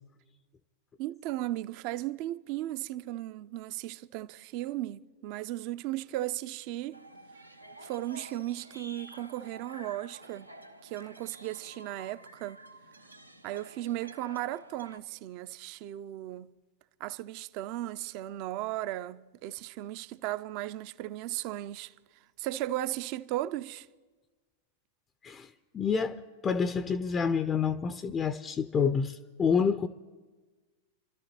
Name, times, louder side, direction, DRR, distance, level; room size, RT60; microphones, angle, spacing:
voice 1, 1.0-7.0 7.8-10.5 10.8-12.6 13.4-16.5 17.0-21.9 22.4-23.9, right 15 dB, 45° right, 0.5 m, -36 dB
sound 1, 6.9-15.0, right 1 dB, 85° right, 0.6 m, -50 dB
voice 2, 25.2-29.9, left 6 dB, 20° left, 0.4 m, -28 dB
30.0 x 12.5 x 2.9 m
figure-of-eight pair, 90°, 0 cm